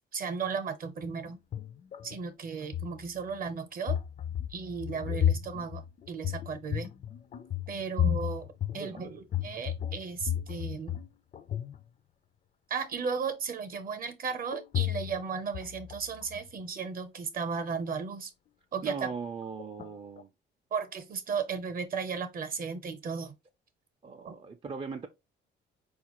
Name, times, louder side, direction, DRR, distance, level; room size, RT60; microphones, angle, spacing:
voice 1, 0.1-1.4 2.0-4.0 4.5-6.9 7.7-8.5 8.7-11.0 12.7-18.3 18.7-19.1 20.7-23.3 24.2-24.3, right 5 dB, 45° right, 0.7 m, -35 dB
sound 1, 1.0-2.2 2.6-3.5 3.9-11.1 11.3-11.8 14.5-15.3 15.5-16.5 19.6-19.9 20.2-20.3, left 10 dB, 40° left, 0.4 m, -33 dB
voice 2, 18.8-20.3 24.0-25.1, right 5 dB, 25° right, 0.4 m, -39 dB
4.3 x 2.4 x 2.9 m
cardioid pair, 90°, 20 cm